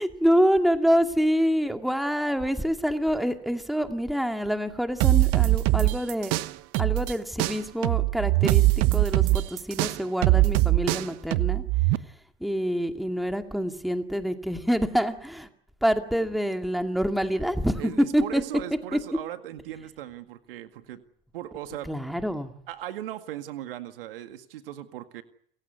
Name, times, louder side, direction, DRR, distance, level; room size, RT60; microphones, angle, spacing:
voice 1, 0.0-6.3 6.8-8.6 8.9-11.6 12.4-15.5 15.8-18.4 18.9-19.0 21.9-22.5, equal, ahead, 6 dB, 2.2 m, -26 dB
sound 1, 5.0-7.1 7.4-12.0, right 19 dB, 50° right, 1.1 m, -22 dB
voice 2, 17.8-21.0 21.3-21.9 22.7-25.2, right 12 dB, 70° right, 9 dB, 2.0 m, -38 dB
29.0 x 15.5 x 9.4 m, 0.67 s
hypercardioid pair, 90°, 29 cm